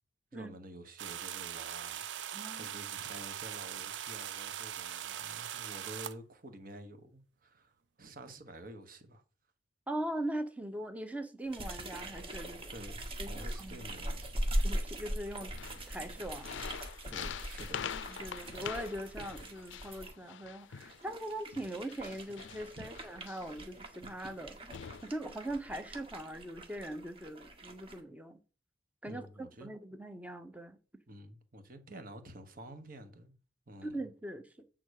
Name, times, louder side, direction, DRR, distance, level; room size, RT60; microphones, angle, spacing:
voice 1, 0.3-9.2 12.7-14.6 17.1-17.9 22.8-22.9 29.1-29.7 31.1-33.3 33.7-34.0, right 1 dB, 50° right, 1.3 m, -50 dB
sound 1, 1.0-6.2, right 10 dB, 75° right, 0.5 m, -41 dB
voice 2, 2.3-2.7 9.9-12.6 13.2-13.8 14.6-16.5 18.1-24.6 25.0-28.4 29.0-30.8 33.8-34.6, right 1 dB, 10° right, 0.8 m, -41 dB
sound 2, 11.5-20.1 20.7-28.0, right 1 dB, 30° right, 1.3 m, -40 dB
sound 3, 15.4-21.0 21.5-23.7 24.3-24.4 24.7-25.1, left 8 dB, 80° left, 0.4 m, -45 dB
8.0 x 3.8 x 6.5 m
head